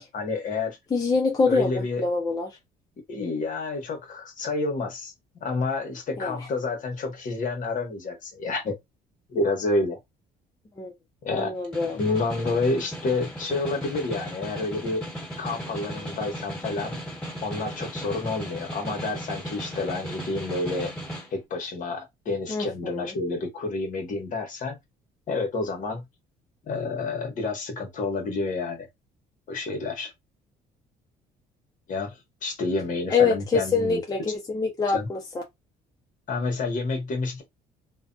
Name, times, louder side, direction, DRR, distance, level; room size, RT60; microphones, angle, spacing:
voice 1, 0.0-0.8 1.5-2.0 3.1-8.8 9.3-10.0 11.2-11.5 11.9-15.0 15.4-17.0 17.4-20.9 21.3-24.8 25.3-26.0 26.7-28.9 29.5-30.1 31.9-34.0 34.9-35.1 36.3-37.4, left 3 dB, 50° left, 1.2 m, -29 dB
voice 2, 0.9-2.5 6.2-6.5 10.8-10.9 11.3-12.0 22.5-23.1 33.1-35.4, left 4 dB, 20° left, 0.6 m, -25 dB
Snare drum, 11.5-21.3, right 1 dB, 5° left, 1.6 m, -36 dB
2.5 x 2.2 x 2.6 m
cardioid pair, 110°, 17 cm